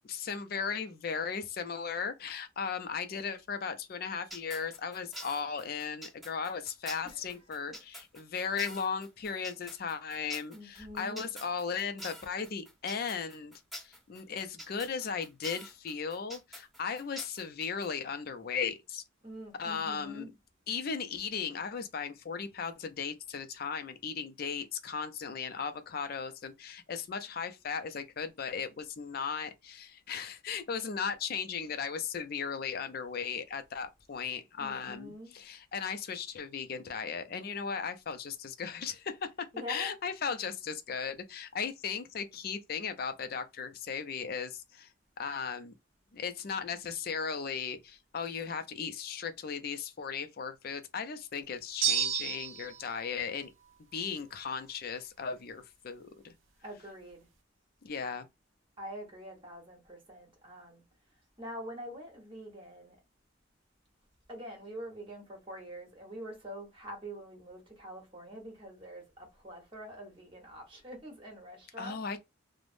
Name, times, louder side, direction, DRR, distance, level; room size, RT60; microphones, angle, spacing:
voice 1, 0.1-13.5 13.8-19.0 19.6-20.3 20.7-39.2 39.7-44.9 45.2-45.7 46.1-53.5 53.9-56.3 57.8-58.3 71.8-72.2, left 6 dB, 50° left, 0.4 m, -36 dB
sound 1, 4.3-17.9, equal, ahead, 1.3 m, -46 dB
voice 2, 7.1-7.8 10.5-11.3 19.2-20.3 34.6-35.3 39.5-39.9 56.6-57.3 58.8-60.8 61.4-63.0 64.3-72.0, equal, 25° right, 1.1 m, -45 dB
sound 2, 51.8-52.8, right 8 dB, 75° right, 0.6 m, -30 dB
3.2 x 2.0 x 2.5 m
head